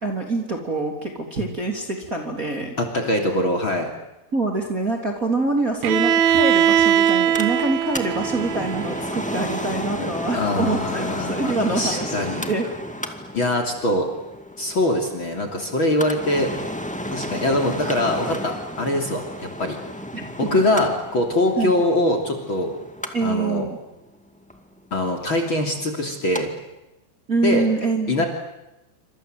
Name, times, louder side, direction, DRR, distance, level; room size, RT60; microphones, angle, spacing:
voice 1, 0.0-2.8 4.3-12.1 12.5-12.7 20.1-20.6 21.6-21.8 23.1-23.8 27.3-28.2, right 3 dB, 25° right, 2 dB, 3.2 m, -25 dB
voice 2, 2.8-3.9 10.0-12.5 13.3-14.1 14.6-16.5 17.1-19.8 20.4-22.7 23.2-23.6 24.9-26.5 27.4-27.7 28.1-28.3, left 1 dB, 35° left, 3 dB, 3.5 m, -23 dB
Bowed string instrument, 5.8-9.7, right 9 dB, 75° right, 3.1 m, -21 dB
Mechanical fan, 7.0-26.4 26.8-26.9, equal, 5° left, 0.6 m, -33 dB
28.0 x 26.0 x 7.9 m, 0.95 s
omnidirectional pair, 4.4 m